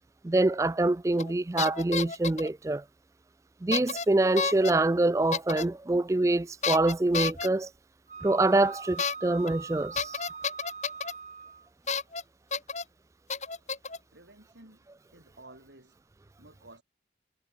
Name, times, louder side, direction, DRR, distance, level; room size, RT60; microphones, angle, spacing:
voice 1, 0.2-2.8 3.6-7.7 8.2-10.2, right 2 dB, 15° right, 0.3 m, -25 dB
sound 1, 1.2-1.3 1.6-2.5 3.7-4.0 4.4-4.7 5.3-5.6 6.6-7.5 9.0-9.1 9.4-9.5 10.0-11.1 11.9-12.2 12.5-12.8 13.3-14.0, left 5 dB, 40° left, 2.0 m, -31 dB
Wind instrument woodwind instrument, 8.1-11.7, right 5 dB, 40° right, 1.3 m, -43 dB
voice 2, 14.1-14.8 15.1-16.0 16.4-16.8, right 2 dB, 80° right, 7.0 m, -53 dB
head